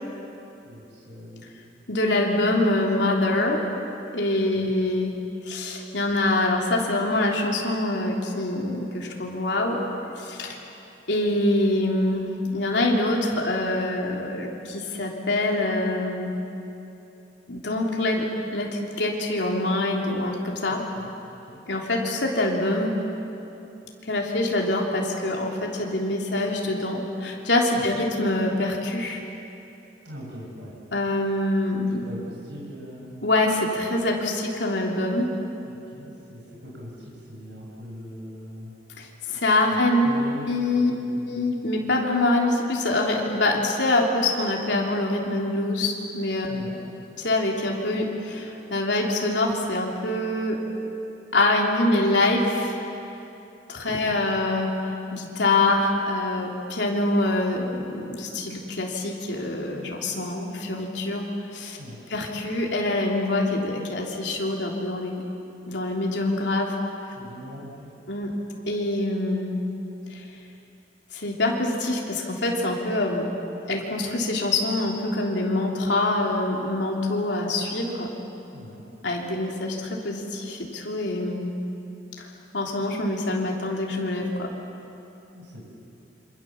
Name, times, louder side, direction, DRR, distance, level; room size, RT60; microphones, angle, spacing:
voice 1, 0.7-1.5 4.5-4.7 21.0-21.1 21.4-21.6 27.8-28.0 30.0-30.7 32.0-33.2 35.6-38.7 39.7-40.5 40.8-41.4 46.5-46.8 54.0-54.1 61.8-62.0 67.1-67.9 78.5-78.8 85.3-85.6, equal, 80° right, -4 dB, 6.4 m, -41 dB
voice 2, 1.9-3.7 4.1-5.1 5.4-9.8 10.2-10.6 11.1-16.3 17.5-18.3 18.5-20.8 21.7-22.9 24.1-29.2 30.9-32.0 33.2-35.3 39.0-40.1 40.5-40.9 41.2-46.5 47.2-50.6 51.3-52.8 53.7-61.3 61.5-61.8 62.1-65.2 65.7-66.8 68.1-68.3 68.7-69.6 70.1-70.2 71.1-73.3 73.7-78.1 79.0-81.5 82.2-82.3 82.5-84.5, left 2 dB, 75° left, -1 dB, 3.4 m, -25 dB
27.5 x 26.5 x 7.3 m, 2.8 s
head